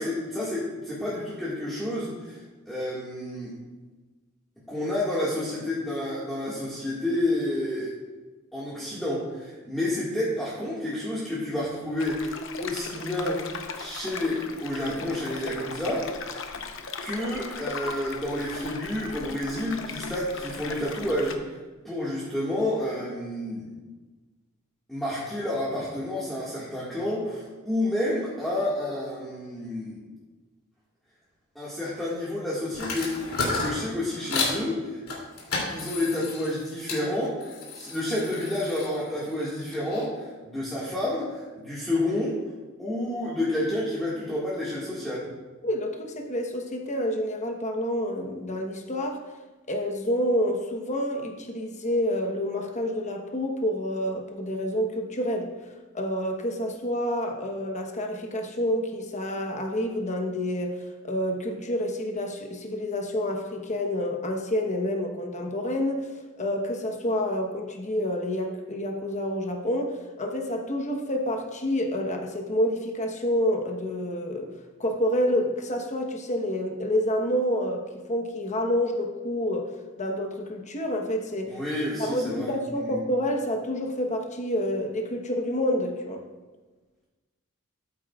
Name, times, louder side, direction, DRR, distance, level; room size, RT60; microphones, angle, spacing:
voice 1, 0.0-3.5 4.7-7.9 8.5-13.5 13.8-16.1 17.0-21.6 21.8-23.7 24.9-30.0 31.6-35.0 35.7-42.4 42.8-45.3 81.5-83.0, left 1 dB, ahead, -10 dB, 1.8 m, -30 dB
sound 1, 12.0-21.3, left 4 dB, 65° left, 0.8 m, -38 dB
sound 2, 32.7-34.6 35.1-37.0 37.4-40.0, left 3 dB, 80° left, 2.8 m, -33 dB
voice 2, 45.6-49.2 49.7-55.5 55.9-66.1 66.4-74.5 74.8-79.7 80.0-81.6 82.1-86.2, equal, 35° left, 3 dB, 1.1 m, -28 dB
13.5 x 8.5 x 2.4 m, 1.2 s
head